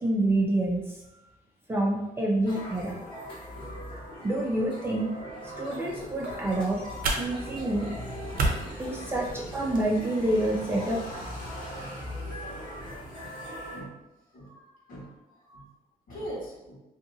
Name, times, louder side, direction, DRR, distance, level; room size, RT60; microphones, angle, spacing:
voice 1, 0.0-1.0 1.7-3.0 4.2-5.1 5.6-6.9 7.2-7.9 8.8-11.2, right 1 dB, 15° right, -3 dB, 0.4 m, -27 dB
sound 1, 2.5-13.8, equal, 30° left, 0.8 m, -40 dB
sound 2, 5.9-9.9, right 2 dB, 65° right, 0.6 m, -34 dB
voice 2, 14.3-15.7 16.1-16.8, equal, 55° left, -6 dB, 1.3 m, -41 dB
2.7 x 2.4 x 2.6 m, 0.96 s
cardioid pair, 130°, 16 cm